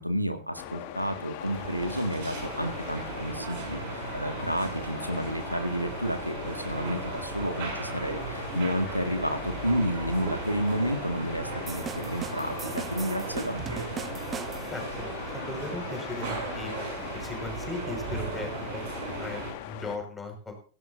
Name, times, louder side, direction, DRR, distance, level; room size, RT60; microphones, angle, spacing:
voice 1, 0.0-14.0, equal, 90° right, 6 dB, 2.0 m, -31 dB
sound 1, 0.6-20.0, left 11 dB, 45° left, 1.8 m, -40 dB
sound 2, 1.4-19.5, right 4 dB, 50° right, 6.8 m, -37 dB
sound 3, 11.7-14.9, right 7 dB, 20° right, 1.0 m, -39 dB
voice 2, 14.7-16.7 17.1-18.8 19.2-20.5, left 2 dB, 10° left, 3 dB, 5.5 m, -38 dB
17.0 x 16.5 x 2.7 m, 0.40 s
figure-of-eight pair, 90°, 0 cm